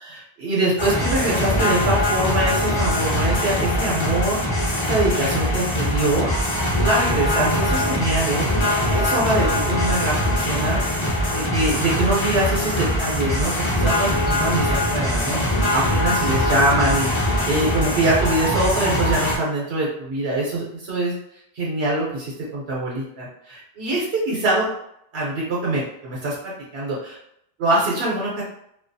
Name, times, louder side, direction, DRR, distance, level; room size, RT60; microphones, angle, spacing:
voice 1, 0.0-6.3 6.8-10.8 11.3-21.1 21.5-24.7 25.1-27.2 27.6-28.4, right 2 dB, 85° right, -5 dB, 0.9 m, -24 dB
sound 1, 0.8-19.4, left 1 dB, 35° left, 0.5 m, -22 dB
2.3 x 2.3 x 2.6 m, 0.76 s
omnidirectional pair, 1.1 m